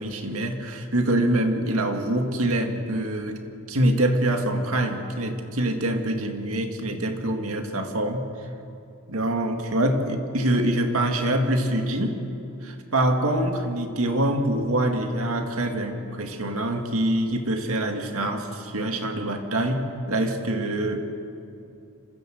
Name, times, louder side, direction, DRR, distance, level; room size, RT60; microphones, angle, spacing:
voice 1, 0.0-3.4 3.7-8.3 9.1-12.2 12.6-21.0, right 1 dB, 75° right, 4 dB, 2.2 m, -25 dB
27.0 x 15.5 x 7.9 m, 2.7 s
head